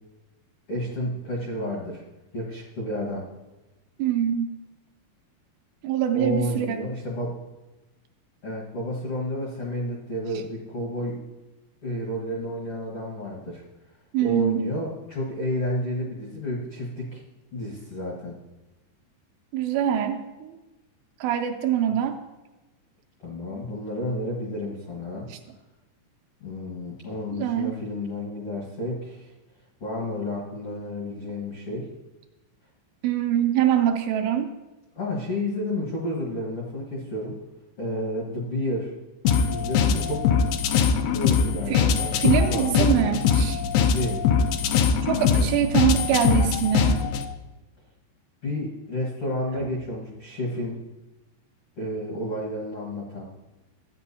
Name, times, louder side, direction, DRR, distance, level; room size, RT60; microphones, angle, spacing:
voice 1, 0.7-2.0 2.3-3.3 6.1-7.3 8.4-11.2 11.8-13.6 14.2-17.2 17.5-18.3 23.2-25.3 26.4-29.3 29.8-31.9 34.9-37.4 37.8-38.9 39.5-40.3 41.1-43.1 43.7-44.2 48.4-50.8 51.8-53.2, left 1 dB, 70° left, -4 dB, 1.3 m, -31 dB
voice 2, 4.0-4.6 5.8-6.8 14.1-14.6 19.5-20.5 21.2-22.2 25.3-25.4 27.3-27.7 33.0-34.6 41.7-41.9 42.2-43.6 45.1-47.0, right 10 dB, 80° right, 5 dB, 2.5 m, -24 dB
sound 1, 39.3-47.3, left 6 dB, 90° left, 2.2 m, -22 dB
13.5 x 8.7 x 2.8 m, 1.1 s
omnidirectional pair, 5.1 m